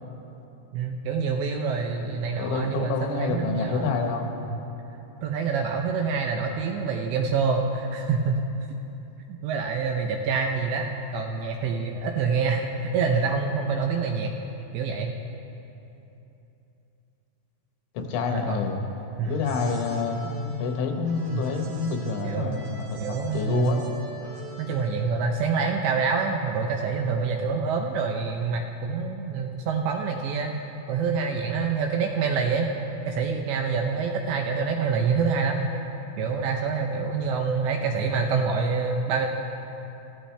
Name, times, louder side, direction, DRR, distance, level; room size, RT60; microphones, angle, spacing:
voice 1, 0.7-3.9 4.4-4.6 5.2-8.4 9.3-14.3 14.7-15.1 18.3-18.7 19.2-19.4 21.3-21.5 22.2-22.6 23.0-23.8 24.6-30.5 30.9-32.7 33.1-35.6 36.2-39.3, right 5 dB, 80° right, 2 dB, 2.7 m, -26 dB
voice 2, 2.4-4.3 18.0-18.8 19.3-23.8, left 4 dB, 75° left, 3 dB, 3.6 m, -28 dB
sound 1, 19.3-25.2, right 2 dB, 55° right, 3.1 m, -44 dB
27.0 x 15.0 x 3.4 m, 3.0 s
omnidirectional pair, 5.8 m